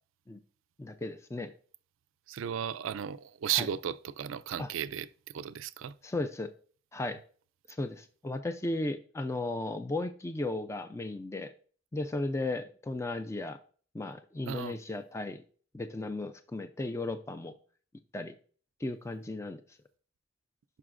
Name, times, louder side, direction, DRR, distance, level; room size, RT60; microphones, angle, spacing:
voice 1, 0.8-1.5 3.5-3.7 4.6-4.7 6.0-6.5 6.9-7.2 7.7-11.5 11.9-13.6 13.9-15.4 15.7-17.5 18.1-18.3 18.8-19.6, left 2 dB, 15° left, 0.3 m, -35 dB
voice 2, 2.3-5.1 5.3-5.9 14.5-14.8, right 9 dB, 80° right, 0.4 m, -34 dB
11.0 x 5.8 x 2.5 m
head